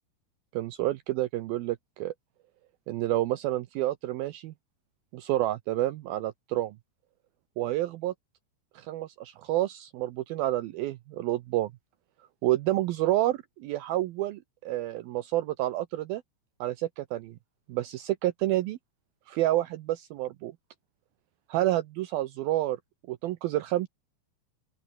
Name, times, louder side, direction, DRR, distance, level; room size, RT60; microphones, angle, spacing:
voice 1, 0.5-2.1 2.9-4.5 5.1-6.8 7.6-8.1 8.8-11.7 12.4-16.2 16.6-17.4 17.7-18.8 19.3-20.5 21.5-22.8 23.1-23.9, right 15 dB, 85° right, 2.1 m, -29 dB
open air
omnidirectional pair, 5.2 m